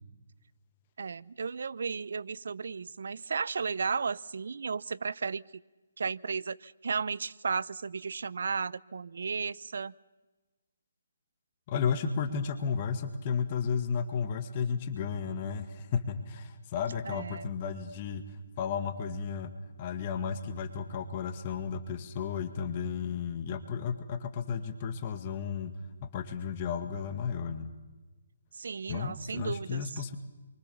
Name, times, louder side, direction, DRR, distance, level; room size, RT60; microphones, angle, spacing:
voice 1, 1.0-5.6 6.0-9.9 17.1-17.5 28.5-29.9, right 5 dB, 65° right, 20 dB, 0.7 m, -34 dB
voice 2, 11.7-19.5 19.8-25.7 26.0-27.7 28.9-30.2, left 6 dB, 30° left, 8 dB, 2.0 m, -33 dB
28.5 x 24.0 x 7.1 m, 1.2 s
hypercardioid pair, 165°, 0 cm